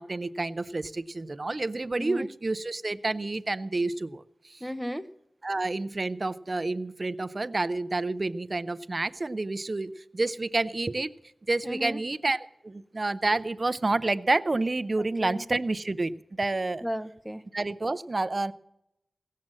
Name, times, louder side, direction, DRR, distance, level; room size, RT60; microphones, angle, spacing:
voice 1, 0.0-4.6 5.4-11.1 11.5-16.1 16.4-16.8 17.5-18.5, right 2 dB, 40° right, 14 dB, 0.5 m, -29 dB
voice 2, 1.9-2.3 4.6-5.1 11.6-12.0 15.2-15.4 16.8-17.4, equal, ahead, 10 dB, 0.7 m, -34 dB
17.0 x 7.5 x 7.5 m, 0.82 s
wide cardioid pair, 80°, 0 cm